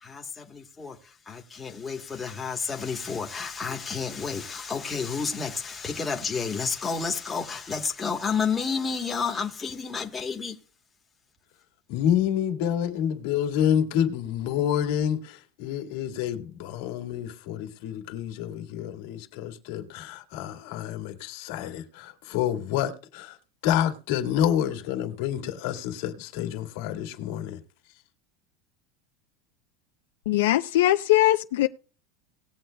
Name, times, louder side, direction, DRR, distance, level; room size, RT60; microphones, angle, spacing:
voice 1, 0.0-10.6, left 5 dB, 15° left, 1.1 m, -31 dB
voice 2, 11.9-23.4 23.6-27.6, left 10 dB, 65° left, 1.7 m, -28 dB
voice 3, 30.3-31.7, left 15 dB, 90° left, 0.5 m, -21 dB
19.0 x 7.9 x 2.2 m
supercardioid pair, 150°, 0 cm